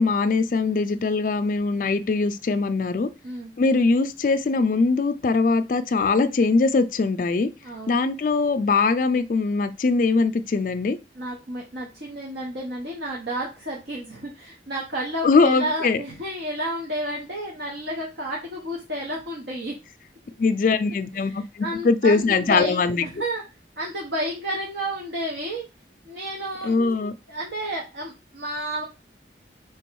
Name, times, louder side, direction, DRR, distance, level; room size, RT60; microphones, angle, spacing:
voice 1, 0.0-3.1 3.6-7.5 7.9-11.0 15.2-16.0 20.4-23.1 26.6-27.1, left 4 dB, 50° left, 0.3 m, -21 dB
voice 2, 7.6-8.0 11.2-19.8 21.1-23.4 23.8-25.7 26.1-26.8 27.3-28.8, right 1 dB, 75° right, 0.9 m, -31 dB
3.4 x 3.0 x 4.5 m
head